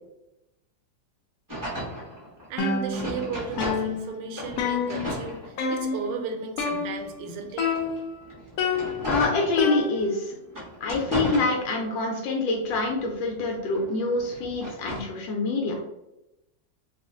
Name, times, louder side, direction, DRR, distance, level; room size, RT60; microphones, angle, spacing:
sound 1, 1.5-4.1 4.3-6.0 6.6-10.0 10.5-12.1 12.5-15.2, equal, 20° right, 0.5 m, -35 dB
voice 1, 2.5-7.7, right 5 dB, 85° right, 5 dB, 1.3 m, -35 dB
sound 2, 2.6-3.3 3.6-5.3 5.6-6.1 6.6-7.2 7.6-8.2 8.6-10.3, left 5 dB, 70° left, 0.9 m, -29 dB
voice 2, 9.1-10.3 10.8-15.8, left 3 dB, 85° left, 1 dB, 1.3 m, -26 dB
2.9 x 2.4 x 3.6 m, 0.90 s
omnidirectional pair, 1.9 m